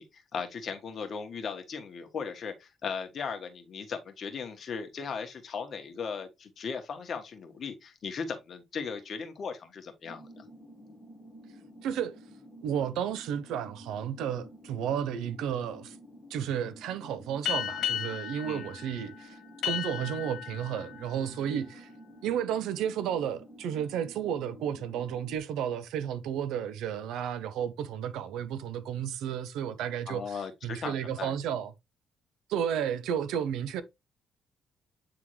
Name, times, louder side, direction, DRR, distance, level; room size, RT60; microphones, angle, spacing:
voice 1, 0.0-10.4 18.4-18.7 30.1-31.3, left 5 dB, 55° left, 1.5 m, -37 dB
sound 1, 10.0-25.4, equal, 10° left, 2.0 m, -51 dB
voice 2, 11.8-12.2 12.6-16.0 16.3-19.4 19.6-21.9 22.2-31.7 32.5-33.8, right 9 dB, 90° right, 0.8 m, -32 dB
sound 2, 17.4-22.5, left 10 dB, 80° left, 1.8 m, -36 dB
8.9 x 3.7 x 3.2 m
cardioid pair, 90°, 0 cm